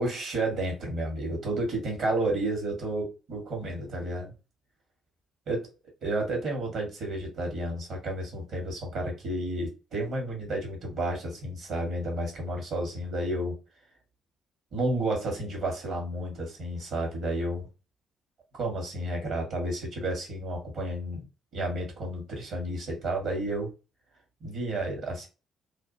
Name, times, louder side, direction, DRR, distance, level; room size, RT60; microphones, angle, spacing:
voice 1, 0.0-4.3 5.5-5.7 6.0-13.6 14.7-17.7 18.5-21.2 21.5-23.7 24.4-25.3, right 1 dB, 60° right, 1.5 m, -31 dB
2.7 x 2.5 x 2.7 m
hypercardioid pair, 45°, 0 cm